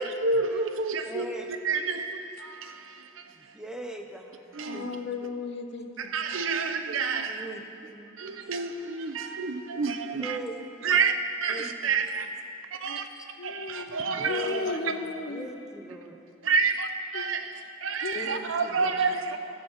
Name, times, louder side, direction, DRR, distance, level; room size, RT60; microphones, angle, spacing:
voice 1, 0.0-3.5 4.5-4.9 6.0-7.5 8.2-10.4 10.8-11.1 11.4-12.3 12.7-13.1 13.4-14.9 16.4-19.4, right 4 dB, 90° right, 0.7 m, -29 dB
voice 2, 1.1-1.5 3.3-5.0 7.3-8.4 10.2-10.9 11.5-11.7 12.9-13.3 14.1-16.3 18.1-19.4, right 1 dB, 5° right, 0.7 m, -41 dB
voice 3, 4.7-6.1 13.4-15.5 17.1-17.3 18.0-18.4 18.8-19.4, left 4 dB, 60° left, 0.6 m, -36 dB
14.0 x 5.3 x 7.4 m
head